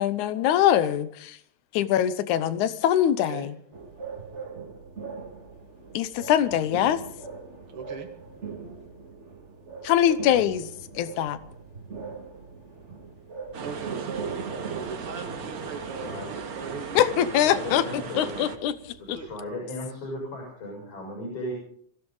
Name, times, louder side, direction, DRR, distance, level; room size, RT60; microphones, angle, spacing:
voice 1, 0.0-1.4 1.7-3.5 5.9-7.0 9.8-10.7 11.0-11.4 17.0-17.8 18.1-18.8 19.1-19.2, left 11 dB, 75° left, 14 dB, 2.2 m, -23 dB
sound 1, 3.7-19.4, right 5 dB, 30° right, 1.6 m, -41 dB
voice 2, 7.7-8.1 13.6-17.0 19.1-19.3, right 5 dB, 45° right, 4 dB, 2.6 m, -39 dB
sound 2, 13.5-18.6, right 5 dB, 80° right, 0.8 m, -37 dB
voice 3, 16.0-16.3 17.5-18.3 19.2-21.5, left 1 dB, 50° left, -1 dB, 7.8 m, -36 dB
23.5 x 16.0 x 3.9 m, 0.63 s
omnidirectional pair, 3.6 m